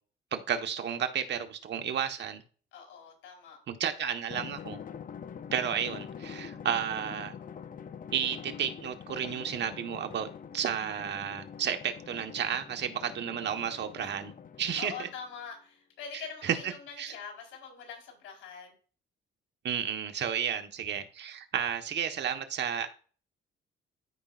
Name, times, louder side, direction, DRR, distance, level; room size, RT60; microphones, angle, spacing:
voice 1, 0.3-2.4 3.7-4.8 5.5-7.3 8.1-10.3 10.5-14.3 14.6-15.1 16.4-16.6 17.0-17.1 19.6-22.9, right 8 dB, 60° right, 1.3 m, -32 dB
voice 2, 2.7-3.6 7.3-7.5 14.0-14.2 14.8-18.7, left 6 dB, 85° left, 4.2 m, -44 dB
Drum, 4.3-15.3, left 7 dB, 45° left, 0.7 m, -45 dB
13.5 x 5.2 x 2.5 m
cardioid pair, 90°, 20 cm